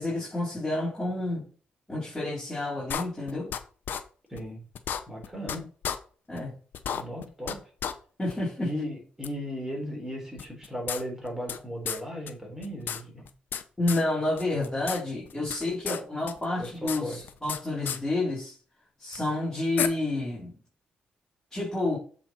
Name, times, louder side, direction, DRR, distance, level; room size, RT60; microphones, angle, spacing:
voice 1, 0.0-1.5 1.9-3.5 6.3-6.5 8.2-8.7 13.8-18.6 19.0-20.6 21.5-22.0, left 2 dB, 10° left, 3.4 m, -29 dB
sound 1, 2.9-3.6 3.9-4.0 4.4-4.5 4.8-5.6 5.8-6.0 6.4-6.5 6.7-7.6 7.8-7.9 8.3-8.4 9.2-9.3 10.4-11.6 11.9-12.0 12.3-12.4 12.6-13.6 13.9-14.0 14.4-15.0 15.3-16.0 16.3-17.6 17.9-18.0 19.1-19.2 19.8-19.9, left 8 dB, 70° left, 0.7 m, -32 dB
voice 2, 4.3-4.6 5.1-5.7 6.9-7.6 8.6-13.2 16.6-17.2, equal, 10° right, 3.6 m, -36 dB
7.7 x 4.2 x 4.3 m
cardioid pair, 80°, 3 cm